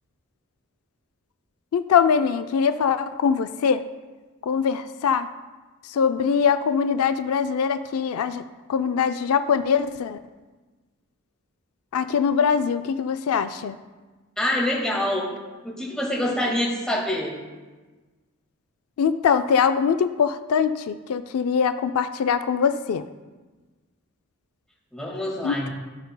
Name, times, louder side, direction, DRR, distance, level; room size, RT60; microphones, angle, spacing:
voice 1, 1.7-3.8 4.4-5.3 5.9-8.4 8.7-10.2 11.9-13.8 19.0-23.0 25.4-25.7, left 6 dB, 85° left, 10 dB, 0.4 m, -22 dB
voice 2, 14.4-15.3 15.6-17.4 24.9-25.7, left 1 dB, 5° left, -4 dB, 1.7 m, -26 dB
16.0 x 5.4 x 2.2 m, 1.3 s
head